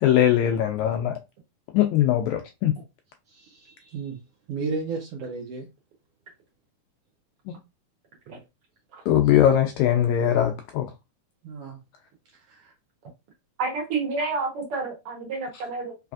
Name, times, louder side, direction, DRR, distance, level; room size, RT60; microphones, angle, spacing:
voice 1, 0.0-1.1 1.7-2.7 7.5-7.6 9.1-10.9, left 11 dB, 85° left, 1.7 m, -21 dB
voice 2, 3.3-4.2 4.5-5.7 11.4-11.8 12.3-12.7, right 4 dB, 90° right, 1.3 m, -33 dB
voice 3, 13.6-15.9, right 4 dB, 60° right, 1.6 m, -29 dB
4.7 x 3.3 x 2.4 m
omnidirectional pair, 3.7 m